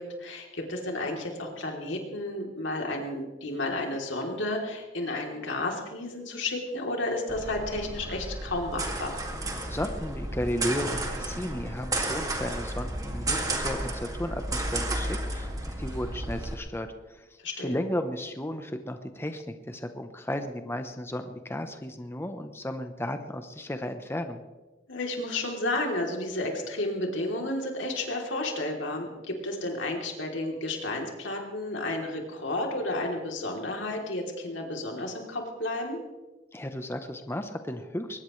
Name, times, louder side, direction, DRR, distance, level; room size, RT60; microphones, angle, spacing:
voice 1, 0.0-9.1 17.4-17.8 24.9-36.0, left 2 dB, 75° left, 1 dB, 3.3 m, -32 dB
sound 1, 7.3-16.5, right 1 dB, 20° right, 2.2 m, -32 dB
voice 2, 9.7-17.3 17.6-24.4 36.5-38.2, left 1 dB, 15° left, 7 dB, 0.9 m, -34 dB
22.0 x 19.5 x 3.2 m, 1.2 s
head